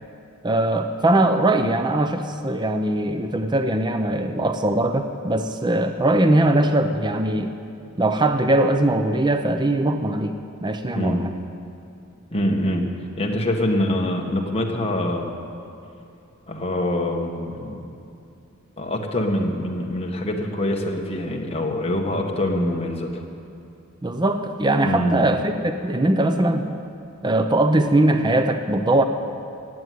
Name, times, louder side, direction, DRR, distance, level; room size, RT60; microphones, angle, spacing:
voice 1, 0.4-7.5 8.0-11.3 24.0-26.7 27.2-29.0, right 1 dB, 20° right, 7 dB, 0.6 m, -21 dB
voice 2, 12.3-12.9 13.2-15.3 16.5-17.8 18.8-23.2 24.8-25.2, left 1 dB, 30° left, 1 dB, 1.5 m, -24 dB
16.0 x 7.9 x 9.4 m, 2.6 s
head